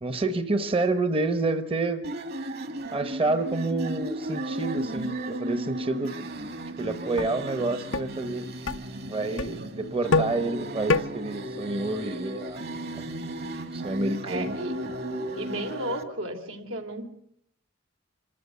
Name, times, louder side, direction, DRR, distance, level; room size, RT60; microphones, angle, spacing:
voice 1, 0.0-2.0 2.9-6.1 6.8-8.4 9.1-12.6 13.7-14.5, right 2 dB, 30° right, 9 dB, 0.9 m, -28 dB
sound 1, 2.0-16.0, right 1 dB, 50° right, 1.9 m, -35 dB
sound 2, 6.6-6.7 7.2-7.3 7.9-8.1 8.7-8.8 9.4-9.5 10.1-10.4 10.9-11.0, left 3 dB, 70° left, 0.8 m, -24 dB
voice 2, 14.2-14.8 15.4-17.0, right 1 dB, 85° right, 4 dB, 3.3 m, -33 dB
26.0 x 14.0 x 8.0 m, 0.71 s
head